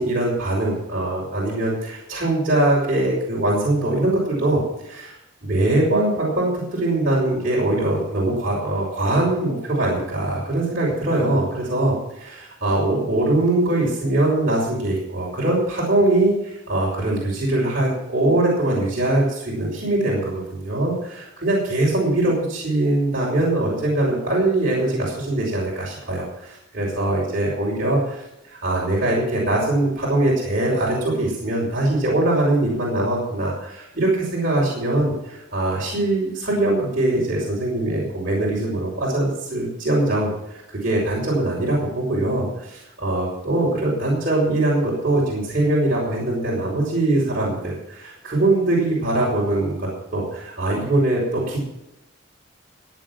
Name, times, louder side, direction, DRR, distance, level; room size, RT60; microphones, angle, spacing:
voice 1, 0.0-5.2 5.4-51.6, right 2 dB, 45° right, -5 dB, 5.5 m, -22 dB
16.5 x 9.3 x 6.2 m, 0.87 s
head